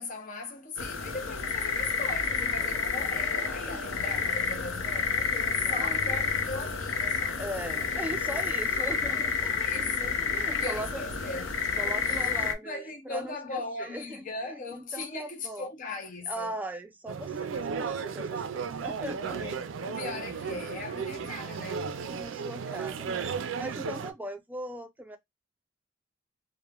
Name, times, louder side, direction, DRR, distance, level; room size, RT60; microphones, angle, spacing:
voice 1, 0.0-7.4 8.8-11.5 11.8-16.6 19.3-21.9, left 3 dB, 45° left, 0.5 m, -39 dB
sound 1, 0.8-12.5, left 5 dB, 85° left, 0.6 m, -30 dB
voice 2, 5.5-6.1 7.4-9.5 10.2-11.0 11.8-15.7 16.3-19.4 22.0-23.1 23.6-25.2, right 1 dB, 10° right, 0.4 m, -39 dB
sound 2, 17.1-24.1, right 6 dB, 75° right, 0.4 m, -34 dB
3.0 x 2.1 x 2.2 m
head